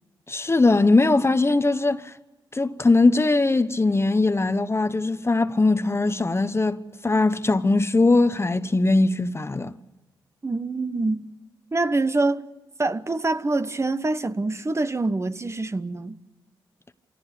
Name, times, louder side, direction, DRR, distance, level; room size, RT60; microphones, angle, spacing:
voice 1, 0.3-2.1 2.5-6.8 7.0-9.7, left 3 dB, 30° left, 1.0 m, -20 dB
voice 2, 10.4-11.3 11.7-12.4 12.8-16.2, right 2 dB, 30° right, 1.2 m, -25 dB
26.0 x 17.5 x 8.4 m
supercardioid pair, 50°, 9 cm